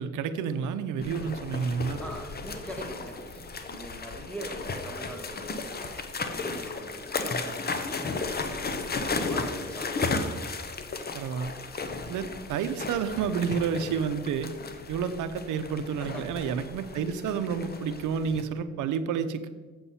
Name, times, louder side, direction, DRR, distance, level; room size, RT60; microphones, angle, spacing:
voice 1, 0.0-2.0 11.1-11.5 12.1-14.5 14.9-19.5, right 6 dB, 80° right, 11 dB, 0.7 m, -30 dB
sound 1, 1.0-18.4, left 3 dB, 30° left, 0.8 m, -35 dB
voice 2, 2.0-6.0 6.3-8.9 9.3-10.1 16.0-16.5, right 1 dB, 5° left, 2 dB, 1.4 m, -43 dB
7.8 x 7.1 x 4.2 m, 1.4 s
cardioid pair, 90°, 30 cm